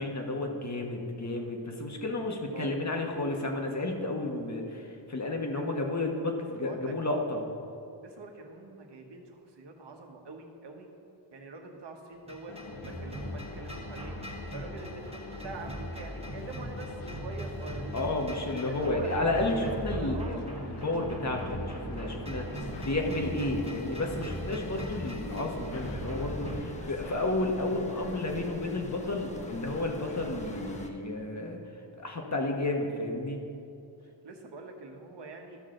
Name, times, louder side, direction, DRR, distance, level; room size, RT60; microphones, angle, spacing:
voice 1, 0.0-7.4 17.9-22.5 22.8-33.4, left 2 dB, 35° left, 2 dB, 1.3 m, -32 dB
voice 2, 2.5-2.9 5.5-5.7 6.5-6.9 8.0-10.9 11.3-14.1 14.5-18.1 18.7-19.1 19.6-19.7 20.0-20.4 22.0-22.9 24.1-24.4 26.8-27.1 34.2-35.6, right 3 dB, 60° right, 3 dB, 1.3 m, -45 dB
sound 1, 12.3-26.6, right 1 dB, 15° right, 1.2 m, -39 dB
sound 2, 12.5-30.9, left 4 dB, 60° left, 0.8 m, -45 dB
sound 3, 22.5-30.9, left 1 dB, 15° left, 0.9 m, -45 dB
13.0 x 6.3 x 3.8 m, 2.7 s
cardioid pair, 70°, 47 cm